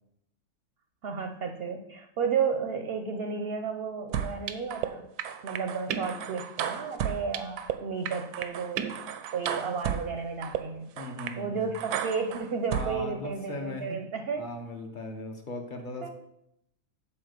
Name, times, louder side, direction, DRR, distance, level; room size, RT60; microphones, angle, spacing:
voice 1, 1.0-5.1 5.4-8.9 9.3-10.9 11.4-14.5 16.0-16.1, right 5 dB, 60° right, 6 dB, 0.7 m, -32 dB
sound 1, 4.1-4.9 5.2-7.7 8.1-10.0 10.4-10.6 11.0-11.3 11.7-12.9, right 9 dB, 90° right, 1.1 m, -33 dB
voice 2, 11.0-11.8 12.7-14.0 14.4-16.1, left 1 dB, 40° left, 4 dB, 0.8 m, -38 dB
7.1 x 4.3 x 6.5 m, 0.82 s
omnidirectional pair, 1.6 m